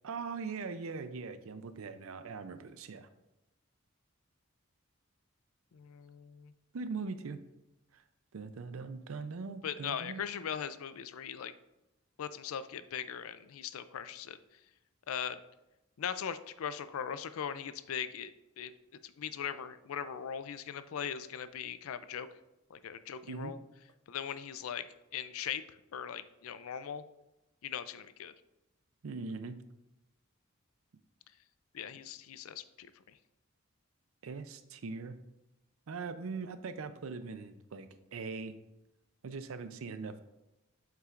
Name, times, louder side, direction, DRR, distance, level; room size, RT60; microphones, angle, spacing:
voice 1, 0.0-3.1 6.7-7.4 7.9-8.0 8.3-10.3 23.2-23.5 29.0-29.6 34.2-35.1 35.9-38.6 39.2-40.2, right 4 dB, 80° right, 11 dB, 0.5 m, -41 dB
voice 2, 5.7-6.5 9.6-11.5 12.2-14.4 15.1-15.4 16.0-18.3 18.6-18.7 19.0-22.3 22.7-23.6 24.1-24.8 25.1-25.6 25.9-27.0 27.6-28.3 31.7-32.9, left 8 dB, 90° left, 13 dB, 0.4 m, -39 dB
7.6 x 5.8 x 2.5 m, 0.95 s
head